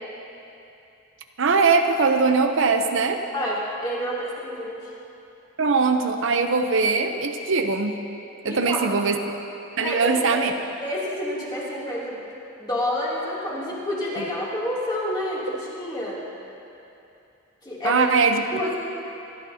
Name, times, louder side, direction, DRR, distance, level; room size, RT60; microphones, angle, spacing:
voice 1, 1.4-3.3 5.6-8.0 8.4-9.2 9.8-10.5 17.8-18.4, right 4 dB, 75° right, 5 dB, 0.7 m, -21 dB
voice 2, 3.3-4.8 8.4-8.8 9.8-10.5 10.8-12.2 12.6-16.2 17.6-18.1 18.5-18.8, left 1 dB, 20° left, -7 dB, 2.9 m, -28 dB
24.5 x 12.0 x 2.8 m, 2.8 s
head